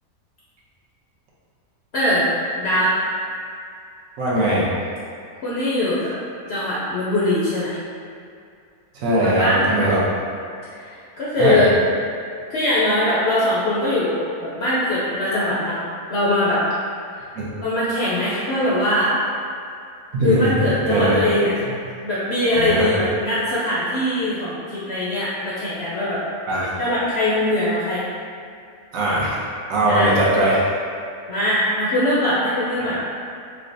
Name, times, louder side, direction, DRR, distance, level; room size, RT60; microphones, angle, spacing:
voice 1, 1.9-2.3 2.6-3.0 5.4-6.1 6.5-7.8 9.2-9.9 10.7-11.7 12.5-15.8 16.1-16.6 17.1-17.3 17.6-19.2 20.2-21.6 22.0-26.2 26.8-28.1 29.8-30.1 31.3-33.0, left 1 dB, 65° left, -8 dB, 0.6 m, -21 dB
voice 2, 4.2-4.7 8.9-10.0 11.4-11.6 17.4-17.5 20.1-21.2 21.7-21.8 22.5-23.1 26.5-26.7 28.9-29.4 29.7-30.6, right 1 dB, 65° right, -6 dB, 1.1 m, -20 dB
4.7 x 2.1 x 2.6 m, 2.4 s
omnidirectional pair, 1.6 m